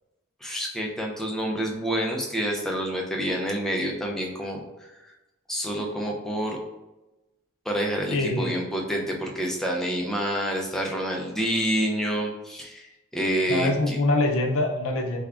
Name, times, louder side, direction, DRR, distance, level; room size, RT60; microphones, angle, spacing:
voice 1, 0.4-4.6 5.5-6.6 7.7-14.0, equal, ahead, -1 dB, 0.4 m, -28 dB
voice 2, 8.1-8.5 13.5-15.2, left 2 dB, 65° left, 3 dB, 0.5 m, -24 dB
3.5 x 3.4 x 2.4 m, 1.0 s
head